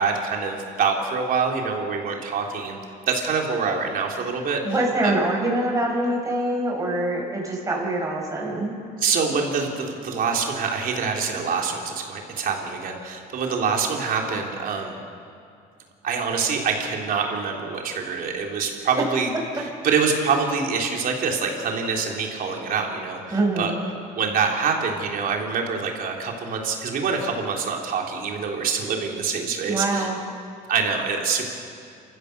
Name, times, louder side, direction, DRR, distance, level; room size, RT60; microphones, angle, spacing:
voice 1, 0.0-2.8 3.1-4.6 5.0-5.1 9.0-15.0 16.0-19.3 19.5-23.7 24.1-30.1 30.7-31.5, right 5 dB, 60° right, 1 dB, 3.5 m, -25 dB
voice 2, 4.6-8.7 23.3-23.7 29.7-30.2, right 2 dB, 20° right, -2 dB, 6.2 m, -24 dB
28.5 x 15.0 x 6.8 m, 2.4 s
cardioid pair, 110°, 17 cm